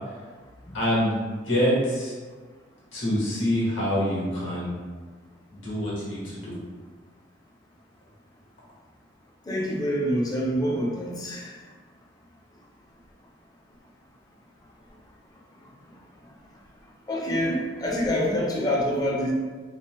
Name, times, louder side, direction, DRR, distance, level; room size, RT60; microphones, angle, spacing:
voice 1, 0.7-2.1 2.9-4.7 5.5-6.6, equal, 80° left, -7 dB, 1.1 m, -26 dB
voice 2, 9.5-11.5 17.1-19.3, equal, 20° left, -2 dB, 0.4 m, -26 dB
2.7 x 2.0 x 3.0 m, 1.5 s
head